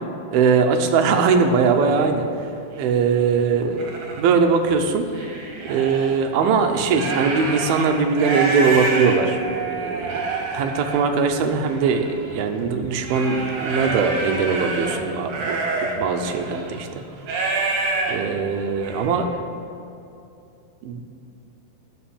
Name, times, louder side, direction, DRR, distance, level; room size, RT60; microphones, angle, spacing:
voice 1, 0.3-2.3 2.8-5.1 5.6-15.6 16.0-17.0 18.1-19.4 20.8-21.1, right 5 dB, 80° right, 5 dB, 2.6 m, -21 dB
sound 1, 1.3-1.4 1.9-2.2 2.8-2.9 3.4-4.2 4.7-6.1 6.7-19.2, right 3 dB, 60° right, 3.0 m, -28 dB
11.5 x 5.9 x 8.7 m, 2.7 s
omnidirectional pair, 4.4 m